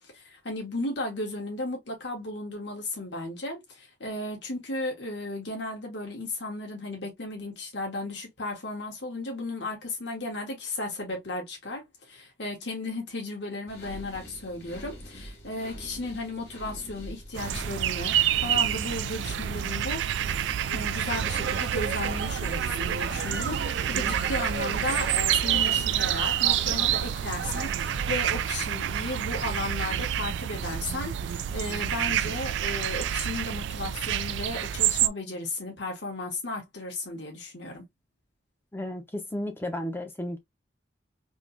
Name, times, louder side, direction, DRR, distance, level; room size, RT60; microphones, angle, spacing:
voice 1, 0.0-20.1 20.7-37.8, left 2 dB, 75° left, 1.5 m, -35 dB
sound 1, 13.7-28.2, equal, 60° left, 1.5 m, -44 dB
sound 2, 17.4-35.1, right 10 dB, 85° right, 0.3 m, -28 dB
sound 3, 20.9-28.5, right 5 dB, 70° right, 0.8 m, -36 dB
voice 2, 38.7-40.4, left 1 dB, 15° left, 0.6 m, -33 dB
3.6 x 2.8 x 2.6 m
head